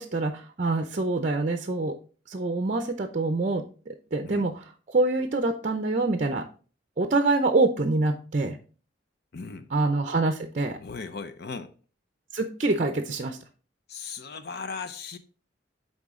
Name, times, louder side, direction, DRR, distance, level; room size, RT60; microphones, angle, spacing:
voice 1, 0.0-1.9 2.3-6.4 7.0-8.6 9.7-10.8 12.3-13.4, right 2 dB, 40° right, 0.6 m, -26 dB
voice 2, 9.3-9.7 10.8-11.7 13.9-15.2, left 5 dB, 60° left, 0.6 m, -37 dB
9.0 x 3.8 x 3.6 m
head